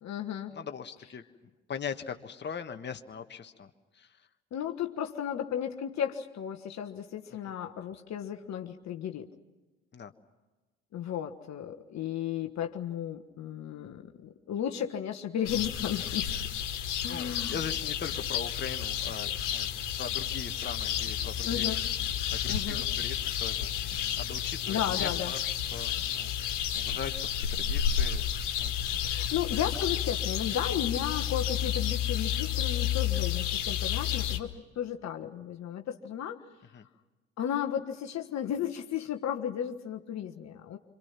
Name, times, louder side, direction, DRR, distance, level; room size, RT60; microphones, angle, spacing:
voice 1, 0.0-0.5 4.5-9.3 10.9-16.3 17.0-17.6 21.4-21.8 22.5-22.8 24.7-25.3 29.0-36.4 37.4-40.8, left 9 dB, 50° left, 4 dB, 1.5 m, -34 dB
voice 2, 0.5-1.2 1.7-3.7 3.9-4.1 9.9-10.1 17.1-19.7 20.0-21.6 22.3-28.2 28.6-28.7 36.7-36.9, left 7 dB, 30° left, 6 dB, 1.5 m, -40 dB
sound 1, 15.5-34.4, left 10 dB, 75° left, 1.8 m, -31 dB
26.5 x 26.5 x 6.0 m, 1.2 s
figure-of-eight pair, 55°, 36 cm